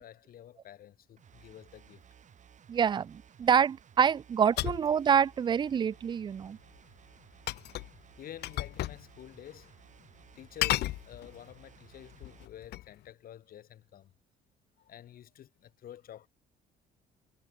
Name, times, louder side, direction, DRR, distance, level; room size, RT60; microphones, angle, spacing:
voice 1, 0.0-2.0 5.6-5.7 8.2-9.8 10.3-14.1 14.8-16.3, left 11 dB, 60° left, 6.2 m, -49 dB
sound 1, 1.2-12.5, right 8 dB, 45° right, 6.0 m, -58 dB
voice 2, 2.7-6.6, right 7 dB, 25° right, 0.4 m, -26 dB
sound 2, 4.6-4.9 7.5-8.0 8.4-9.0 9.3-9.4 10.6-11.5 12.1-12.9, left 16 dB, 75° left, 1.4 m, -33 dB
cardioid pair, 110°, 17 cm